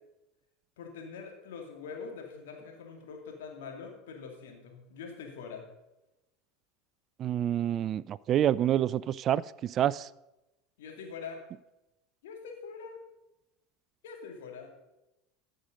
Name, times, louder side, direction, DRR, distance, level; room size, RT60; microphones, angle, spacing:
voice 1, 0.8-5.7 10.8-11.4 12.2-13.0 14.0-14.7, left 5 dB, 70° left, 2 dB, 2.3 m, -44 dB
voice 2, 7.2-10.1, right 11 dB, 40° right, 21 dB, 0.3 m, -28 dB
14.5 x 6.5 x 5.3 m, 0.94 s
hypercardioid pair, 80°, 0 cm